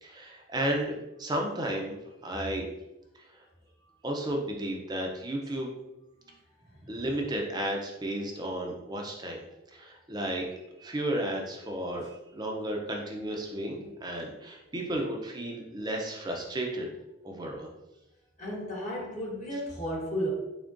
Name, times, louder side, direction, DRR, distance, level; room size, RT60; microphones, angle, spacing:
voice 1, 0.0-2.0 2.2-2.7 4.0-5.7 6.9-9.4 9.7-12.1 12.3-16.9 17.2-17.7, right 1 dB, 20° right, 0 dB, 0.5 m, -33 dB
voice 2, 6.6-7.0 18.4-20.3, equal, 35° left, -3 dB, 1.2 m, -34 dB
3.6 x 3.6 x 2.5 m, 0.97 s
head